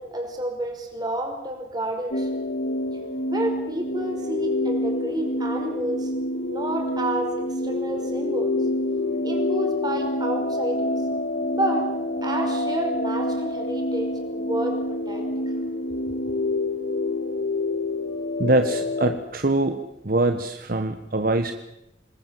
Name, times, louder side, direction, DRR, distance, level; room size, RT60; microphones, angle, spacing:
voice 1, 0.0-2.4 3.3-6.1 6.5-7.3 7.6-8.5 9.2-10.9 11.5-11.8 12.2-15.5, right 1 dB, 25° right, 3 dB, 5.2 m, -30 dB
sound 1, 2.1-19.2, left 1 dB, 65° left, 2.1 m, -27 dB
voice 2, 18.4-19.8 20.0-21.5, right 2 dB, 50° right, 8 dB, 1.3 m, -23 dB
27.0 x 20.5 x 7.7 m, 0.87 s
head